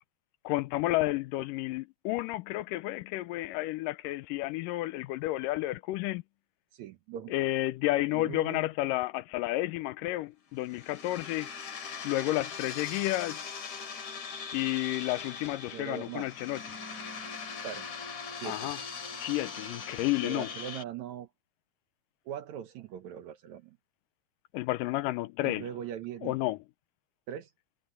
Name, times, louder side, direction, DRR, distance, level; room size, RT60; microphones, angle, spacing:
voice 1, 0.4-6.2 7.3-11.5 12.0-13.5 14.5-16.6 18.4-18.8 19.2-20.5 24.5-25.7 26.2-26.6, left 17 dB, 80° left, 2.1 m, -31 dB
voice 2, 6.7-7.3 8.1-8.7 15.7-16.3 17.6-17.9 18.3-18.7 20.2-21.3 22.3-23.8 25.4-26.4 27.3-27.5, right 10 dB, 70° right, 1.8 m, -40 dB
sound 1, 10.6-20.8, left 5 dB, 50° left, 4.2 m, -41 dB
omnidirectional pair, 4.2 m